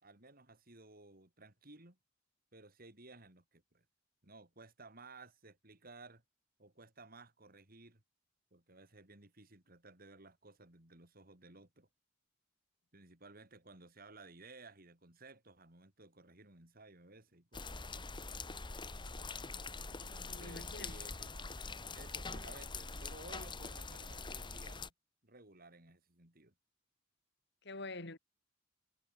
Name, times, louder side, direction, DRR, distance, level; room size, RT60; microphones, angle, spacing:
voice 1, 0.0-2.0 2.5-3.8 4.2-6.2 6.6-8.0 8.5-11.9 12.9-18.1 19.9-21.3 21.9-24.9 25.2-26.5, right 3 dB, 50° right, 4.4 m, -57 dB
sound 1, 17.5-24.9, left 3 dB, 25° left, 1.7 m, -44 dB
voice 2, 19.9-20.9 27.6-28.2, left 2 dB, 60° left, 3.3 m, -47 dB
head